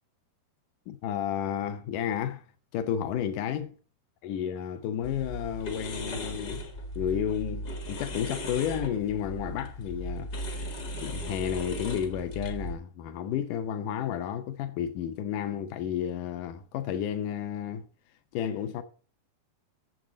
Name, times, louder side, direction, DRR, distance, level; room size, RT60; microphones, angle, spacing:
voice 1, 0.9-2.4 2.7-3.7 4.2-6.6 7.0-10.7 11.0-17.8 18.3-18.8, left 9 dB, 85° left, 1.8 m, -32 dB
sound 1, 5.0-12.7, equal, 50° left, 1.1 m, -37 dB
12.5 x 7.5 x 3.9 m
omnidirectional pair, 4.7 m